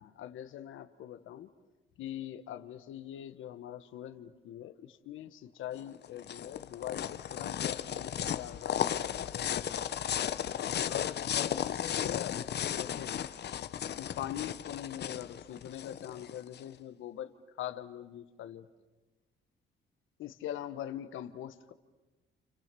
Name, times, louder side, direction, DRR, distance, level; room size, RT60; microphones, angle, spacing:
voice 1, 0.0-1.5 2.0-9.8 10.7-12.4 12.8-13.3 14.0-18.7 20.2-21.7, left 11 dB, 80° left, 10 dB, 1.3 m, -43 dB
sound 1, 5.8-16.6, left 9 dB, 55° left, 0.9 m, -35 dB
29.5 x 28.5 x 7.0 m, 1.2 s
cardioid pair, 90°, 20 cm